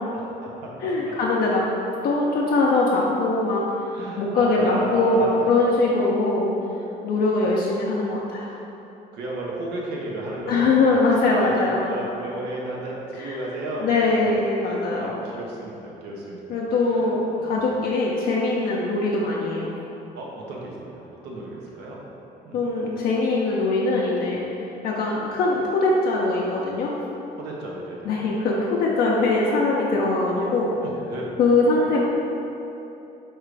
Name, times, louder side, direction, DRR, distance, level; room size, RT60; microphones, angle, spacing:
voice 1, 0.1-1.2 3.9-5.5 8.5-8.6 9.1-17.8 20.1-22.0 22.4-22.6 27.4-28.4 30.8-31.4, right 1 dB, 85° right, -3 dB, 0.7 m, -34 dB
voice 2, 0.8-1.6 2.0-3.7 4.2-6.5 7.0-8.6 10.5-11.8 13.8-15.1 16.5-17.2 17.4-19.7 22.5-24.4 24.8-26.9 28.1-30.7 31.4-32.0, left 3 dB, 65° left, -4 dB, 0.5 m, -22 dB
4.5 x 2.4 x 3.2 m, 3.0 s
cardioid pair, 110°, 17 cm